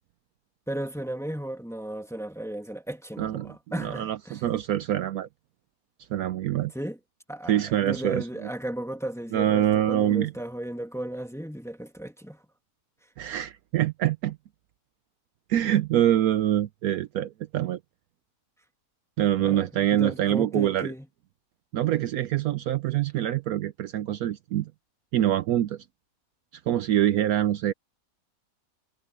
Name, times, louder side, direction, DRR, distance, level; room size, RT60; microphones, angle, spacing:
voice 1, 0.7-4.4 6.7-7.0 7.3-12.4 19.4-21.1, right 1 dB, ahead, 1.7 m, -35 dB
voice 2, 3.2-3.5 3.8-5.3 6.1-6.7 7.5-8.5 9.3-10.3 13.2-14.4 15.5-17.8 19.2-20.9 21.7-24.7 25.1-25.8 26.7-27.7, right 12 dB, 70° right, 1.0 m, -25 dB
omnidirectional pair, 1.7 m